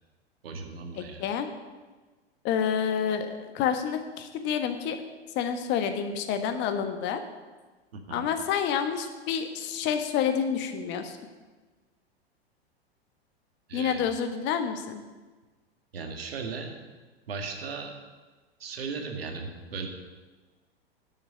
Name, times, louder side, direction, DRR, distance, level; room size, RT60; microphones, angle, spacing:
voice 1, 0.4-1.2 8.1-8.3 13.7-14.0 15.9-16.7 17.3-17.9 18.6-19.9, right 4 dB, 65° right, 3 dB, 2.1 m, -36 dB
voice 2, 0.9-1.5 2.4-5.0 5.3-7.2 8.1-11.2 13.7-15.0, left 7 dB, 35° left, 7 dB, 1.3 m, -28 dB
10.5 x 6.9 x 8.4 m, 1.3 s
figure-of-eight pair, 95°, 32 cm